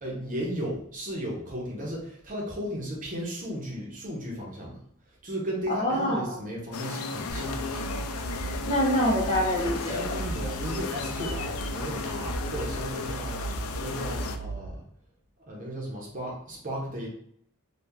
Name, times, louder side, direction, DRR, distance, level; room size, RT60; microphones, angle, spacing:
voice 1, 0.0-4.8 5.1-7.9 9.9-13.4 13.8-14.8 15.4-17.1, equal, 35° right, -4 dB, 0.9 m, -35 dB
voice 2, 5.7-6.4 8.6-10.2, equal, 30° left, -3 dB, 0.8 m, -26 dB
sound 1, 6.7-14.4, left 4 dB, 80° left, 0.4 m, -35 dB
sound 2, 7.3-14.7, right 2 dB, 85° right, 0.7 m, -36 dB
2.9 x 2.4 x 3.6 m, 0.65 s
head